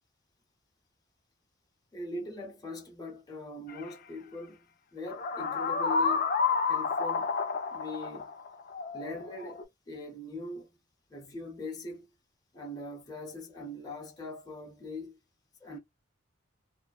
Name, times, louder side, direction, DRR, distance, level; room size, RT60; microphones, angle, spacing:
voice 1, 1.9-4.6 4.9-6.3 6.6-7.4 7.7-8.3 8.9-10.7 11.1-12.1 12.5-15.2 15.6-15.8, left 2 dB, 20° left, 0.8 m, -41 dB
sound 1, 3.7-3.8 5.1-9.6, left 5 dB, 45° left, 0.4 m, -30 dB
2.6 x 2.1 x 2.3 m
head